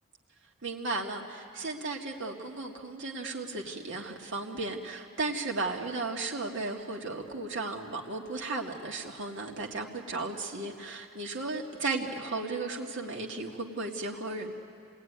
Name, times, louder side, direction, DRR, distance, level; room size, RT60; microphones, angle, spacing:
voice 1, 0.6-14.5, right 3 dB, 65° right, 0 dB, 2.1 m, -35 dB
28.0 x 19.5 x 9.6 m, 2.4 s
head